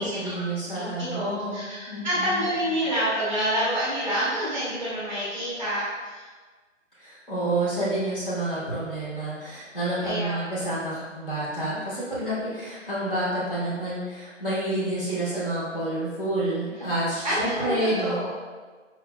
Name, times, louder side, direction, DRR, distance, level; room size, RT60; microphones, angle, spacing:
voice 1, 0.0-1.6 1.9-2.5 7.0-18.3, right 1 dB, 45° left, -9 dB, 1.4 m, -29 dB
voice 2, 0.7-6.2 10.0-10.6 17.2-18.3, equal, 10° left, -11 dB, 1.0 m, -28 dB
4.6 x 3.7 x 2.3 m, 1.4 s
hypercardioid pair, 175°, 38 cm